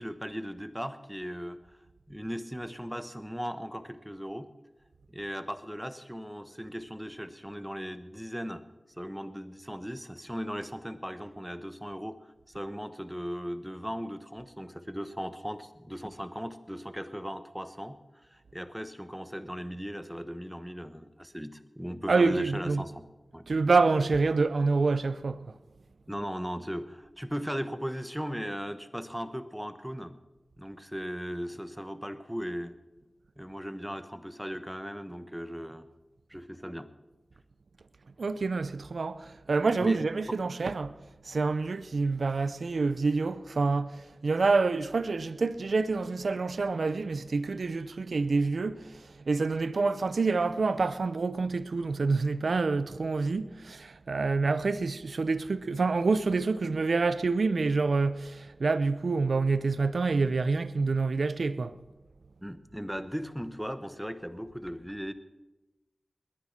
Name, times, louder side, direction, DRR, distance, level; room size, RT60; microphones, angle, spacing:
voice 1, 0.0-1.6 2.1-4.5 5.1-8.6 9.0-23.0 23.3-23.4 26.1-30.1 30.6-32.7 33.4-35.9 36.3-36.9 39.8-40.0 62.4-65.1, equal, 5° right, 1.2 m, -37 dB
voice 2, 22.1-22.8 23.5-25.5 38.2-41.0 41.2-61.8, right 4 dB, 80° right, 0.6 m, -27 dB
20.5 x 9.9 x 5.9 m
cardioid pair, 45°, 0 cm